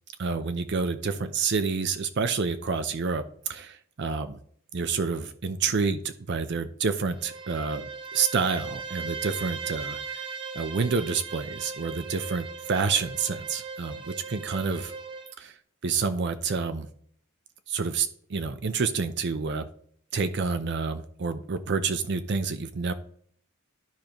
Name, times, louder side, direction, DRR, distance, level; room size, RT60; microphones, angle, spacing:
voice 1, 0.2-4.4 4.7-10.3 10.5-14.9 15.4-15.6 15.8-16.9 17.7-19.7 20.1-22.9, right 5 dB, 55° right, 10 dB, 0.5 m, -28 dB
Bowed string instrument, 7.0-15.3, right 5 dB, 25° right, 1.0 m, -38 dB
13.0 x 5.0 x 3.0 m, 0.62 s
head